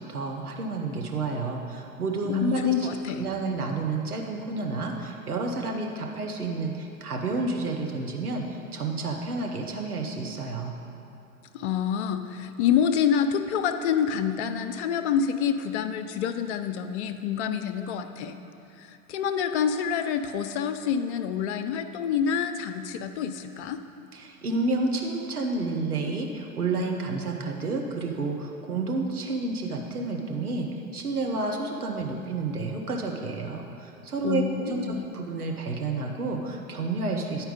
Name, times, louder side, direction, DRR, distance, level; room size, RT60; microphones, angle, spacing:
voice 1, 0.0-2.6 3.2-10.7 24.1-30.7 30.9-37.5, right 3 dB, 85° right, 1 dB, 0.9 m, -30 dB
voice 2, 2.3-3.2 11.5-18.4 18.8-23.8 34.2-35.0, left 8 dB, 50° left, 9 dB, 0.6 m, -27 dB
9.7 x 4.4 x 5.1 m, 3.0 s
figure-of-eight pair, 90°, 43 cm